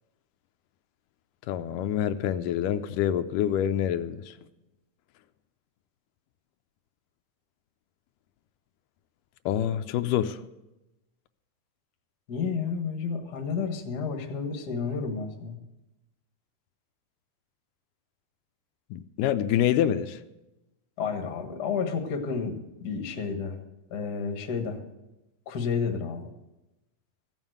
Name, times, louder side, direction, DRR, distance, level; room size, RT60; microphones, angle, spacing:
voice 1, 1.5-4.3 9.5-10.4 18.9-20.2, left 10 dB, 85° left, 2.2 m, -26 dB
voice 2, 12.3-15.6 21.0-23.6 23.9-24.8 25.4-26.3, left 5 dB, 45° left, 1.4 m, -31 dB
15.0 x 7.3 x 7.8 m
omnidirectional pair, 3.7 m